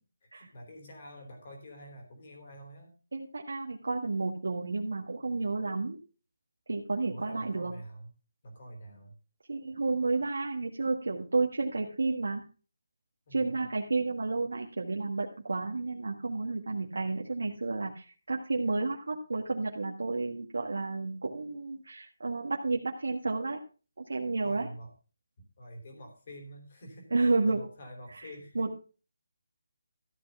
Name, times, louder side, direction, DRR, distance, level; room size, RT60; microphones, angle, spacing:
voice 1, 0.2-2.9 7.1-8.1 8.4-9.1 13.3-13.6 24.4-24.9 25.6-28.7, equal, 30° left, 3 dB, 3.3 m, -47 dB
voice 2, 3.1-6.0 6.7-7.7 9.5-12.4 13.3-23.6 24.1-24.7 27.1-27.6 28.1-28.3 28.5-28.8, right 3 dB, 80° right, 0 dB, 1.6 m, -31 dB
14.0 x 5.9 x 5.5 m, 0.36 s
hypercardioid pair, 180°, 0 cm